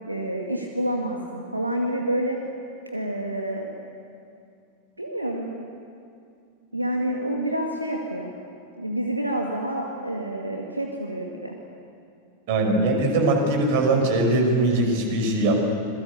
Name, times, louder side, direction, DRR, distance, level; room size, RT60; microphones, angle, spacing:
voice 1, 0.1-2.4 2.9-3.7 5.0-5.5 6.7-8.3 8.8-11.5, right 1 dB, 85° right, 1 dB, 2.1 m, -28 dB
voice 2, 12.5-15.5, right 2 dB, 50° right, 3 dB, 5.7 m, -21 dB
27.0 x 22.0 x 8.4 m, 2.4 s
figure-of-eight pair, 90°, 0 cm